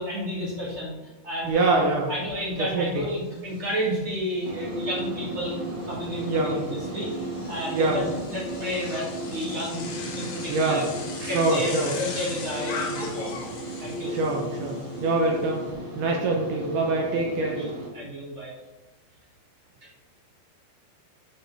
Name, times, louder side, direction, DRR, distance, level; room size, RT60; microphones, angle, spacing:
voice 1, 0.0-5.6 5.8-7.1 7.5-9.9 10.1-10.9 11.2-13.4 13.8-14.1 16.1-16.4 17.5-18.5, equal, 30° right, -5 dB, 1.2 m, -32 dB
voice 2, 1.4-2.1 2.6-3.1 6.3-6.6 7.7-8.0 10.5-10.9 11.2-12.0 14.1-15.7 16.0-17.6, right 2 dB, 75° right, 0 dB, 2.0 m, -25 dB
Bicycle, 1.5-1.6 1.9-15.7, left 4 dB, 80° left, 3.5 m, -40 dB
sound 1, 4.4-17.9, right 1 dB, 55° right, 2.4 m, -35 dB
13.5 x 5.6 x 3.3 m, 1.1 s
omnidirectional pair, 4.8 m